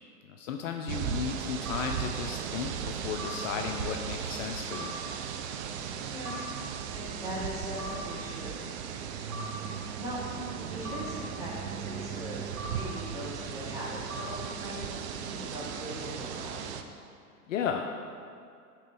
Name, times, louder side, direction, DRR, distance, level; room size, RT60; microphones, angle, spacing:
voice 1, 0.2-5.0 9.3-9.5 17.5-17.8, left 7 dB, 55° left, 3 dB, 0.5 m, -34 dB
sound 1, 0.9-16.8, right 8 dB, 50° right, 0.5 m, -37 dB
sound 2, 1.7-1.8 3.2-3.3 4.7-4.9 6.3-6.4 7.8-7.9 9.3-9.5 10.9-11.0 12.6-12.7 14.1-14.3, right 1 dB, 70° right, 1.5 m, -40 dB
voice 2, 6.0-6.3 6.6-8.6 9.9-10.2 10.5-16.7, equal, 5° right, -7 dB, 1.4 m, -40 dB
7.8 x 3.0 x 4.8 m, 2.3 s
hypercardioid pair, 110°, 46 cm